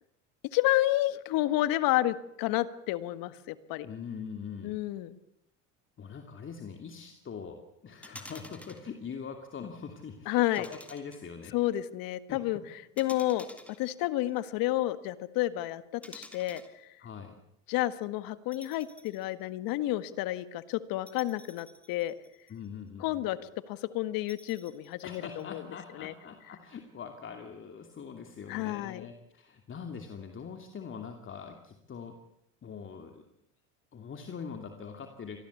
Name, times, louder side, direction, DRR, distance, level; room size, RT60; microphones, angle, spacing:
voice 1, 0.5-3.9 4.6-5.1 10.3-10.7 11.5-13.5 13.8-16.9 17.7-22.1 23.0-23.4 23.7-25.6 26.0-26.1 28.5-29.1, left 15 dB, 65° left, 13 dB, 1.7 m, -30 dB
voice 2, 3.8-4.8 6.0-11.5 12.3-12.6 17.0-17.4 22.5-23.3 25.0-32.2 32.6-33.3 33.9-35.4, left 6 dB, 30° left, 5 dB, 2.8 m, -43 dB
sound 1, 8.0-8.9 10.5-11.5 13.0-14.4 16.0-16.7 18.5-19.3 19.7-19.8 21.1-22.7 24.3-25.4, left 1 dB, 5° left, 3.1 m, -51 dB
25.5 x 19.0 x 8.4 m, 0.81 s
supercardioid pair, 100°, 37 cm